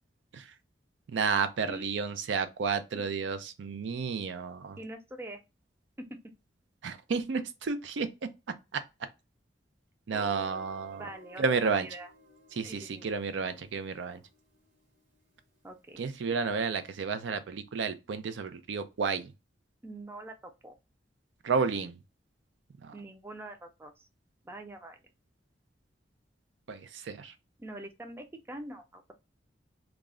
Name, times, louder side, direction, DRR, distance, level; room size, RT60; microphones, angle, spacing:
voice 1, 1.1-4.8 6.8-8.1 8.7-8.8 10.1-11.1 11.4-11.9 12.5-14.2 16.0-19.3 21.4-21.9 22.8-22.9 26.7-27.3, right 5 dB, 90° right, 0.4 m, -31 dB
voice 2, 1.7-2.0 2.9-3.0 4.8-5.4 6.0-6.1 11.0-12.1 12.6-13.1 15.6-16.0 19.8-20.7 22.9-24.1 24.4-25.0 27.6-29.1, right 1 dB, 15° right, 0.4 m, -44 dB
Guitar, 10.1-15.0, left 1 dB, 45° right, 0.9 m, -52 dB
2.3 x 2.0 x 3.6 m
head